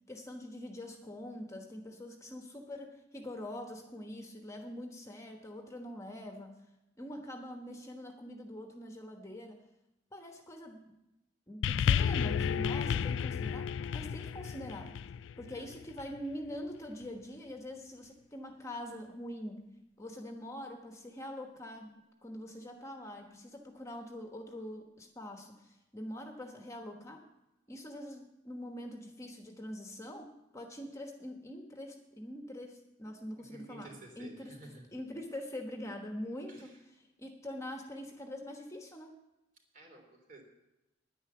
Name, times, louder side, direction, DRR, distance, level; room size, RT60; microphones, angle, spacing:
voice 1, 0.1-6.6 7.0-9.6 10.1-10.9 11.5-14.9 15.4-19.7 20.0-27.2 27.7-30.3 30.5-33.9 34.2-34.5 34.9-36.7 37.2-39.1, left 1 dB, 15° left, 3 dB, 1.2 m, -44 dB
sound 1, 11.6-16.2 17.0-17.1, left 7 dB, 80° left, 0.3 m, -32 dB
voice 2, 33.4-34.8 36.5-36.8 39.7-40.4, right 2 dB, 50° right, 1 dB, 3.4 m, -52 dB
10.0 x 9.7 x 6.9 m, 0.93 s
head